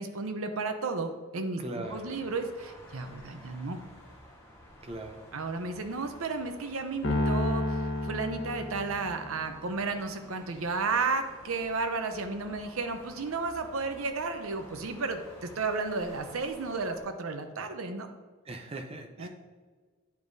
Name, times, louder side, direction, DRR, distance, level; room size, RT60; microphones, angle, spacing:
voice 1, 0.0-3.8 5.3-18.1 19.2-19.3, right 3 dB, 85° right, 7 dB, 0.7 m, -33 dB
voice 2, 1.6-2.2 4.8-5.3 18.4-19.3, right 2 dB, 30° right, 4 dB, 0.6 m, -40 dB
sound 1, 1.8-17.0, equal, 15° left, 1.2 m, -53 dB
Piano, 7.0-9.5, left 2 dB, 60° left, 1.0 m, -30 dB
9.1 x 4.8 x 2.7 m, 1.4 s
head